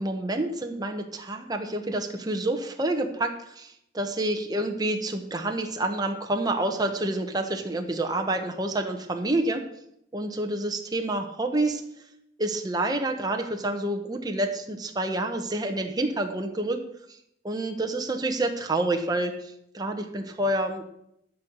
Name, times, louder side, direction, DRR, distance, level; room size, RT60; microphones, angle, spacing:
voice 1, 0.0-9.6 10.1-11.8 12.4-16.8 17.4-20.8, right 2 dB, 20° right, 4 dB, 1.1 m, -28 dB
12.5 x 4.7 x 8.0 m, 0.77 s
head